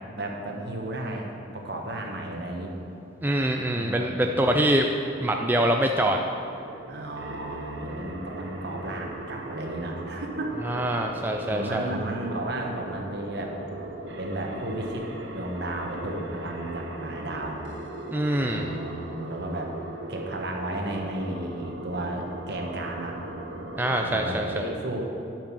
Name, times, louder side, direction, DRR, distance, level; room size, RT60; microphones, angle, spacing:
voice 1, 0.0-2.7 3.7-4.6 6.9-10.5 11.5-13.6 14.2-17.6 18.4-19.7 20.1-23.2 24.0-25.0, right 1 dB, 60° right, 1 dB, 1.3 m, -33 dB
voice 2, 3.2-4.9 5.2-6.2 10.6-11.9 18.1-18.6 23.8-24.4, right 1 dB, 10° right, 2 dB, 0.4 m, -24 dB
sound 1, 5.1-24.4, right 2 dB, 75° right, 1.0 m, -39 dB
10.5 x 6.0 x 6.3 m, 2.8 s
head